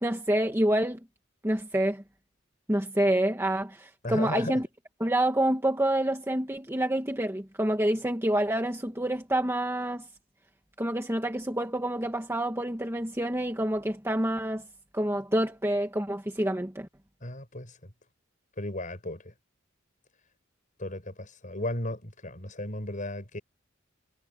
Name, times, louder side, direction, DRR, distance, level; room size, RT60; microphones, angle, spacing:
voice 1, 0.0-1.0 1.4-2.0 2.7-4.7 5.0-10.1 10.8-14.6 14.9-16.9, right 1 dB, 10° right, 1.3 m, -27 dB
voice 2, 4.0-4.6 17.2-17.9 18.6-19.3 20.8-23.4, left 1 dB, 40° left, 7.3 m, -35 dB
head